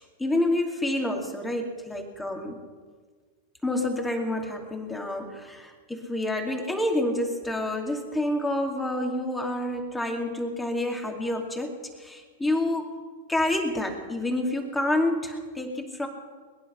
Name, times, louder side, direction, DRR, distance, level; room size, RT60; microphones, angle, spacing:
voice 1, 0.0-2.6 3.6-13.0 13.3-16.1, left 1 dB, 10° left, 3 dB, 2.7 m, -28 dB
21.5 x 10.5 x 5.7 m, 1.5 s
hypercardioid pair, 105°, 0 cm